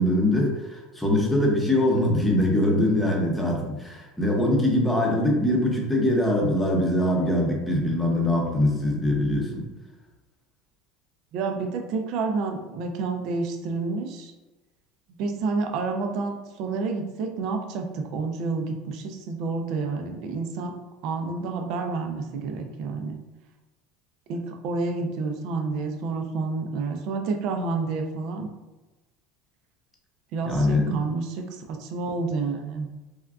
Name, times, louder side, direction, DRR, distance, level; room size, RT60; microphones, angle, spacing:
voice 1, 0.0-9.6 30.5-31.0, left 1 dB, 5° left, -1 dB, 0.7 m, -23 dB
voice 2, 11.3-14.3 15.2-20.7 21.0-23.2 24.3-28.5 30.3-32.9, right 4 dB, 60° right, 4 dB, 0.4 m, -29 dB
3.5 x 2.3 x 2.3 m, 1.1 s
supercardioid pair, 110°, 0 cm